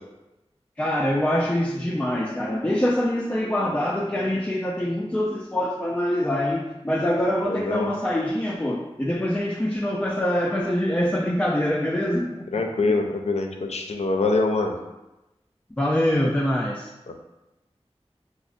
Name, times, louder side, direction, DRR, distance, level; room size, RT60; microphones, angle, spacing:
voice 1, 0.8-12.6 15.8-16.9, left 1 dB, 15° left, -2 dB, 0.3 m, -24 dB
voice 2, 7.5-7.9 12.5-14.7 17.1-17.2, left 3 dB, 80° left, 3 dB, 0.4 m, -24 dB
4.7 x 2.0 x 2.5 m, 0.98 s
wide cardioid pair, 50°, 11 cm